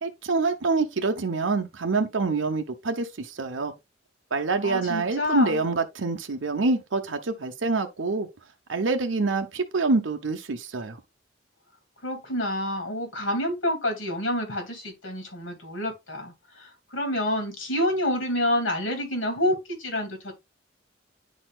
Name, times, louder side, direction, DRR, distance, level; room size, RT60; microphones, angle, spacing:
voice 1, 0.0-3.7 4.3-8.3 8.7-11.0, right 3 dB, 75° right, 0.8 m, -26 dB
voice 2, 4.6-5.6 12.0-20.3, left 1 dB, 75° left, 2.6 m, -28 dB
10.0 x 4.2 x 2.4 m
head